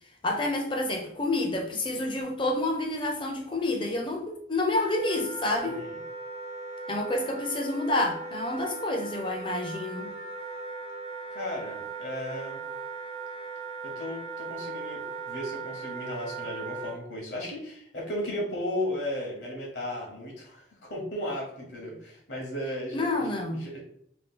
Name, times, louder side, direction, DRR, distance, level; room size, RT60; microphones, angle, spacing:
voice 1, 0.2-5.8 6.9-10.1 22.9-23.6, left 2 dB, 25° left, 1 dB, 0.5 m, -29 dB
Wind instrument woodwind instrument, 4.7-16.9, right 3 dB, 30° right, 0.4 m, -38 dB
voice 2, 11.3-12.6 13.8-23.3 23.6-23.8, left 1 dB, 70° left, -2 dB, 0.9 m, -35 dB
2.8 x 2.2 x 3.6 m, 0.69 s
head